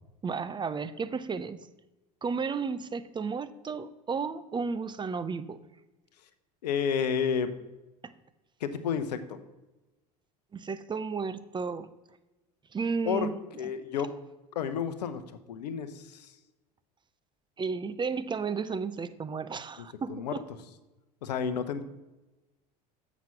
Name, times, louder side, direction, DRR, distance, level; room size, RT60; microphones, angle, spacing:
voice 1, 0.2-1.6 2.2-5.6 8.0-8.1 10.5-11.9 12.7-13.4 13.6-13.7 17.6-20.4, right 5 dB, 25° right, 14 dB, 0.5 m, -33 dB
voice 2, 6.6-7.5 8.6-9.4 13.0-13.3 13.6-14.1 14.5-15.2 15.5-16.3 19.8-20.4 21.2-21.8, left 7 dB, 85° left, 11 dB, 0.7 m, -31 dB
7.4 x 6.1 x 5.6 m, 1.0 s
hypercardioid pair, 75°, 21 cm